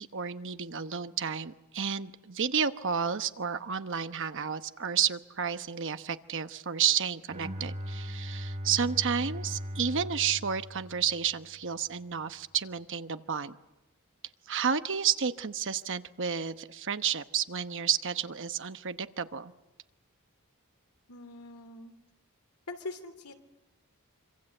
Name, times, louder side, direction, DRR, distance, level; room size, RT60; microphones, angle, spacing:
voice 1, 0.0-13.6 14.5-19.5, right 7 dB, 60° right, 10 dB, 1.1 m, -31 dB
Bowed string instrument, 7.3-11.4, equal, 30° right, 6.4 m, -39 dB
voice 2, 21.1-21.9 22.7-23.3, left 2 dB, 90° left, 7 dB, 3.1 m, -42 dB
26.0 x 26.0 x 7.9 m, 1.0 s
head